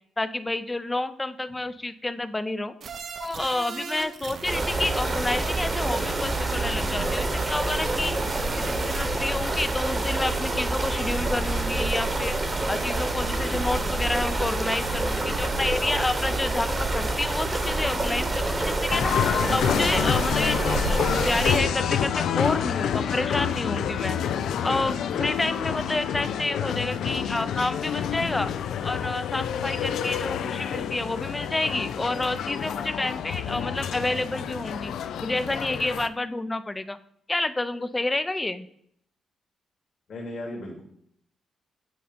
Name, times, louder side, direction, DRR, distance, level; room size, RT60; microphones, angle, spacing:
voice 1, 0.2-2.7 3.2-8.1 8.7-12.4 12.7-19.1 19.5-24.2 24.6-28.5 28.8-34.9 35.2-37.0 37.3-38.7, left 2 dB, 15° left, 12 dB, 0.4 m, -29 dB
sound 1, 2.8-9.1, right 6 dB, 60° right, 0.6 m, -39 dB
sound 2, 4.4-21.6, right 2 dB, 30° right, 1.1 m, -27 dB
sound 3, 18.9-36.1, left 8 dB, 85° left, 0.3 m, -28 dB
voice 2, 40.1-40.8, left 1 dB, 60° left, -2 dB, 1.7 m, -36 dB
7.7 x 2.8 x 5.0 m, 0.69 s
cardioid pair, 90°, 0 cm